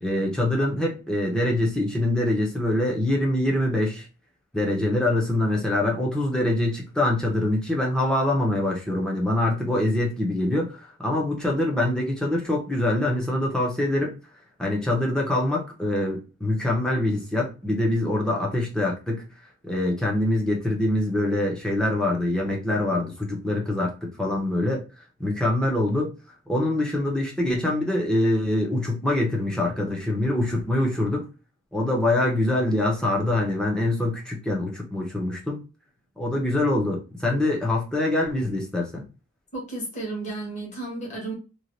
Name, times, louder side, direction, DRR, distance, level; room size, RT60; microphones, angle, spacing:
voice 1, 0.0-4.0 4.5-14.1 14.6-19.2 19.6-24.8 25.2-26.1 26.5-31.3 31.7-35.6 36.2-39.0, left 1 dB, 5° left, 0.7 m, -24 dB
voice 2, 39.5-41.3, right 2 dB, 35° left, 1.4 m, -33 dB
3.1 x 2.4 x 2.6 m
head